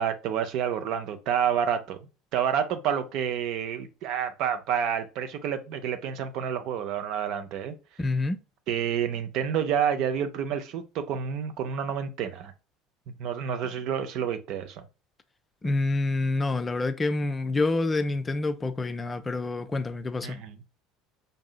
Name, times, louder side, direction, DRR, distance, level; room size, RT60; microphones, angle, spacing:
voice 1, 0.0-2.0 2.3-7.7 8.7-12.5 13.2-14.8 20.2-20.6, right 8 dB, 50° right, 0.6 m, -29 dB
voice 2, 8.0-8.4 15.6-20.4, left 2 dB, 20° left, 0.4 m, -27 dB
5.2 x 2.7 x 2.2 m
figure-of-eight pair, 65°, 0 cm